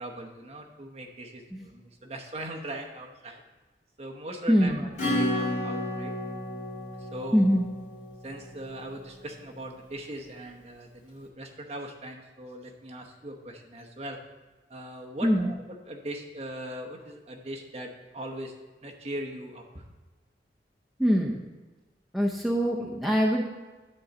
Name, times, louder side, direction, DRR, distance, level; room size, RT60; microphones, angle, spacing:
voice 1, 0.0-3.4 4.0-4.9 5.2-6.1 7.0-7.6 8.2-14.2 14.7-15.6 15.9-18.5 18.8-19.8, right 1 dB, 35° right, 1 dB, 0.9 m, -40 dB
voice 2, 4.5-4.9 7.3-7.7 15.2-15.5 21.0-21.4 22.1-23.4, equal, ahead, -2 dB, 0.6 m, -23 dB
Acoustic guitar / Strum, 5.0-9.3, left 1 dB, 40° left, 2.4 m, -32 dB
9.7 x 3.9 x 6.9 m, 1.2 s
head